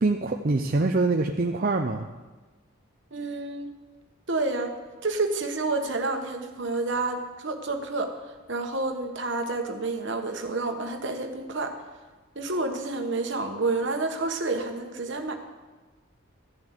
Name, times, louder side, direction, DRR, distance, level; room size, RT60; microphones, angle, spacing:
voice 1, 0.0-2.1, right 3 dB, 40° right, 3 dB, 0.6 m, -24 dB
voice 2, 3.1-3.7 4.3-4.7 5.0-11.8 12.3-15.3, right 3 dB, 55° right, 5 dB, 1.4 m, -29 dB
14.0 x 7.2 x 8.1 m, 1.3 s
head